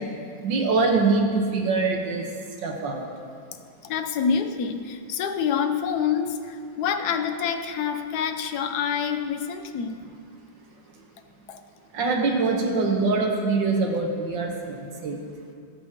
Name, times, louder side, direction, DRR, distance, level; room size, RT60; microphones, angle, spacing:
voice 1, 0.4-2.3 2.6-3.1 11.9-15.2, right 3 dB, 85° right, 1 dB, 1.9 m, -24 dB
voice 2, 3.8-10.0 11.5-11.6, left 7 dB, 65° left, 7 dB, 1.1 m, -27 dB
18.5 x 7.4 x 2.9 m, 2.3 s
omnidirectional pair, 2.0 m